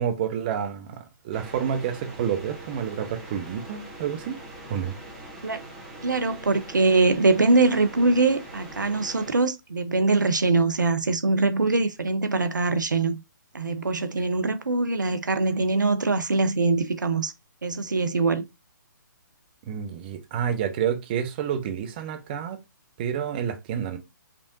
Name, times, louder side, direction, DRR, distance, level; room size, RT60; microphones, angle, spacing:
voice 1, 0.0-4.4 4.7-4.9 19.6-22.6 23.0-24.0, right 8 dB, 30° right, 0.7 m, -29 dB
sound 1, 1.3-9.3, right 1 dB, ahead, 1.7 m, -42 dB
voice 2, 6.0-13.2 13.5-17.3 17.6-18.4, right 3 dB, 70° right, 0.7 m, -23 dB
5.2 x 3.4 x 2.6 m
figure-of-eight pair, 135°, 11 cm